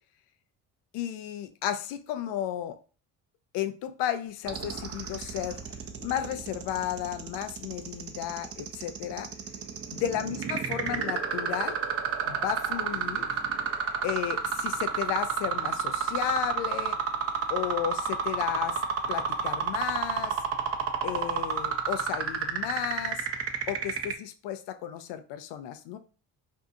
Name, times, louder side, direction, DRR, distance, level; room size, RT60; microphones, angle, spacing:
voice 1, 0.9-2.8 3.5-5.6 6.0-9.3 10.0-11.8 12.2-13.3 14.0-17.0 17.5-18.8 19.1-20.4 21.0-23.3 23.7-26.0, left 11 dB, 70° left, 10 dB, 0.5 m, -33 dB
sound 1, 4.5-24.1, right 7 dB, 35° right, 0.5 m, -30 dB
2.6 x 2.3 x 2.6 m, 0.37 s
supercardioid pair, 65°, 43 cm